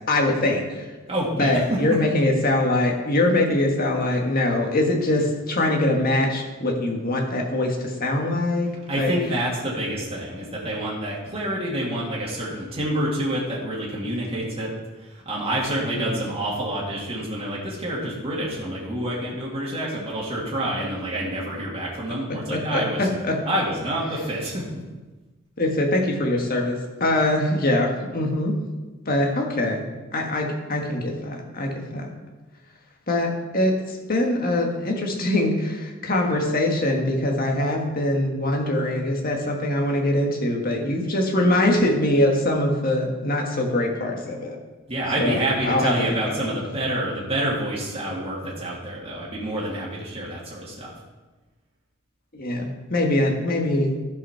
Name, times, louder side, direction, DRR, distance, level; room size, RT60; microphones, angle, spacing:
voice 1, 0.1-0.9 1.4-8.7 9.0-9.1 15.9-16.1 22.5-23.4 25.6-28.5 29.1-29.8 30.1-32.1 33.1-44.6 45.2-45.9 46.2-46.3 52.3-53.9, left 1 dB, 45° left, 1 dB, 1.7 m, -23 dB
voice 2, 1.1-2.0 8.9-14.7 15.0-23.1 23.5-24.6 44.9-50.9, right 1 dB, 30° right, -6 dB, 2.0 m, -27 dB
12.5 x 5.6 x 5.8 m, 1.2 s
head